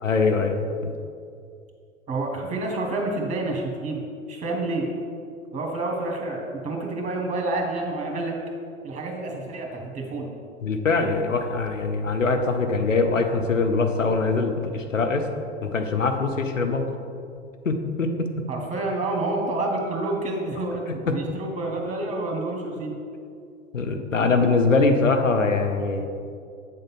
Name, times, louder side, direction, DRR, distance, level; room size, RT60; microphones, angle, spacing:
voice 1, 0.0-0.9 10.6-15.3 15.6-16.9 17.6-18.1 21.1-21.2 23.7-26.1, left 3 dB, 90° left, 5 dB, 0.7 m, -23 dB
voice 2, 2.1-4.0 4.3-4.9 5.5-8.3 8.8-10.3 18.5-22.9, right 2 dB, 20° right, 0 dB, 1.6 m, -28 dB
8.0 x 3.8 x 5.9 m, 2.3 s
figure-of-eight pair, 95°, 37 cm